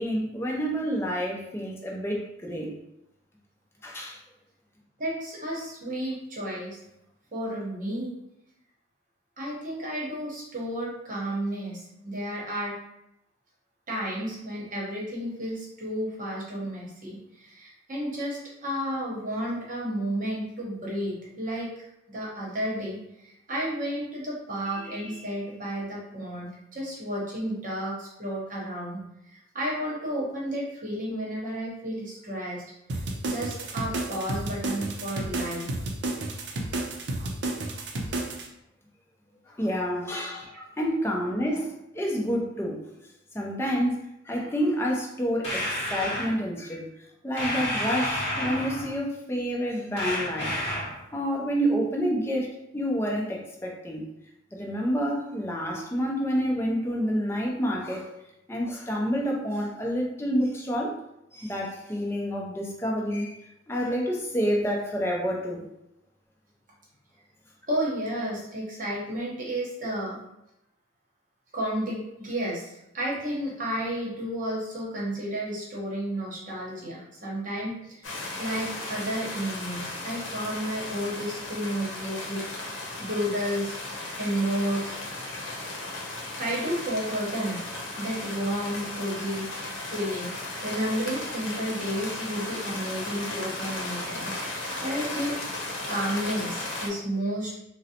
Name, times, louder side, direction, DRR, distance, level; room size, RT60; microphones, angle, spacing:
voice 1, 0.0-2.7 3.8-4.2 39.5-42.8 43.3-44.0 44.3-45.7 45.9-46.8 47.2-50.5 51.1-54.0 54.5-58.1 58.5-61.0 61.3-63.4 63.7-65.6, equal, 15° left, -2 dB, 0.5 m, -28 dB
voice 2, 5.0-6.8 7.3-8.1 9.4-12.7 13.9-17.2 17.4-21.8 22.1-23.0 23.5-29.0 29.3-32.6 33.2-35.7 40.4-40.6 67.7-70.2 71.5-77.7 78.1-83.8 84.2-85.0 86.3-87.6 88.0-90.3 90.6-95.4 95.9-97.6, equal, 45° right, -4 dB, 0.9 m, -32 dB
sound 1, 32.9-38.5, right 2 dB, 60° right, 0.5 m, -31 dB
sound 2, 45.4-46.3 47.4-48.9 50.0-51.0, left 1 dB, 30° left, 0.9 m, -30 dB
sound 3, 78.0-96.9, left 2 dB, 85° left, 0.7 m, -36 dB
3.8 x 2.0 x 2.8 m, 0.85 s
head